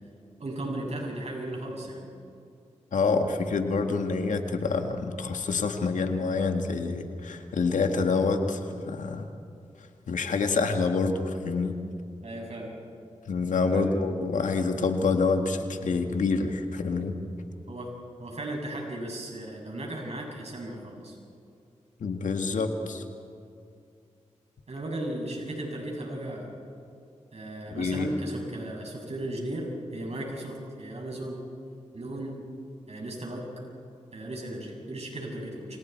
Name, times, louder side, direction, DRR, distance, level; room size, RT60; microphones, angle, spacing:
voice 1, 0.4-2.1 12.2-12.7 13.7-13.9 17.7-17.9 18.2-21.2 24.7-26.5 27.3-31.4 31.9-32.4 32.9-33.5 34.1-35.8, right 1 dB, 60° right, -1 dB, 7.5 m, -36 dB
voice 2, 2.9-9.3 10.1-11.8 13.3-17.1 22.0-23.0 27.7-28.1, left 4 dB, 85° left, 5 dB, 1.9 m, -27 dB
30.0 x 26.5 x 4.7 m, 2.5 s
cardioid pair, 50°, 13 cm